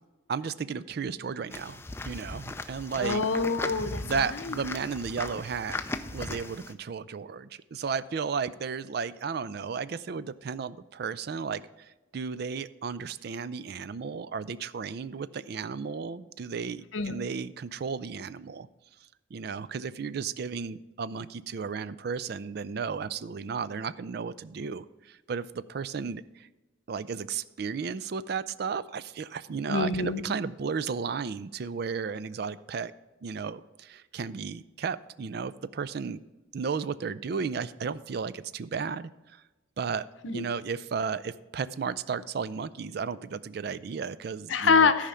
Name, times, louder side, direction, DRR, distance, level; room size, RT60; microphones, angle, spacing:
voice 1, 0.3-3.2 4.0-5.8 6.1-18.7 19.3-26.5 26.9-32.9 33.2-36.2 36.5-39.4 39.8-40.1 40.3-44.9, right 5 dB, 55° right, 16 dB, 0.4 m, -34 dB
sound 1, 1.5-6.7, left 2 dB, 10° left, 0.4 m, -37 dB
voice 2, 3.0-4.6 16.9-17.1 29.7-30.2 40.2-40.4 44.5-45.1, left 4 dB, 75° left, 11 dB, 0.7 m, -25 dB
13.5 x 5.0 x 5.6 m, 1.1 s
head